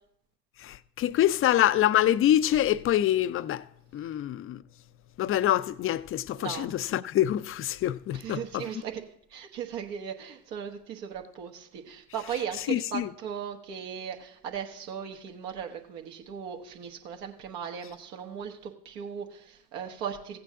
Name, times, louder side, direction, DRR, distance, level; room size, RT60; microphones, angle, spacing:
voice 1, 0.6-3.7 3.9-4.6 5.2-8.7 12.7-13.1, left 12 dB, 30° left, 0.4 m, -25 dB
voice 2, 6.4-6.7 8.1-9.0 9.3-20.4, right 8 dB, 75° right, 1.3 m, -37 dB
15.0 x 8.6 x 3.7 m
hypercardioid pair, 60°, 48 cm